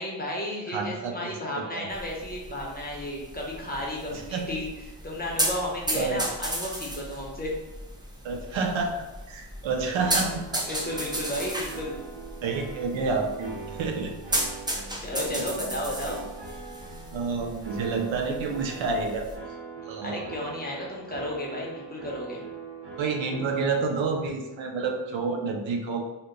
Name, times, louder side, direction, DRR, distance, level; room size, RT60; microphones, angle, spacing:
voice 1, 0.0-4.7 5.0-7.5 10.7-12.0 15.0-16.2 20.0-22.4, left 1 dB, 20° left, -3 dB, 0.7 m, -33 dB
voice 2, 0.7-1.4 1.7-1.9 4.1-4.6 5.9-6.2 8.2-10.6 12.4-14.1 15.3-15.5 17.1-19.3 19.8-20.2 23.0-26.1, right 4 dB, 75° right, 3 dB, 0.6 m, -29 dB
sound 1, 1.9-19.4, right 1 dB, 10° right, 0.4 m, -35 dB
sound 2, 9.9-23.7, right 5 dB, 55° right, 1.2 m, -42 dB
2.7 x 2.2 x 3.8 m, 1.0 s
wide cardioid pair, 115°, 47 cm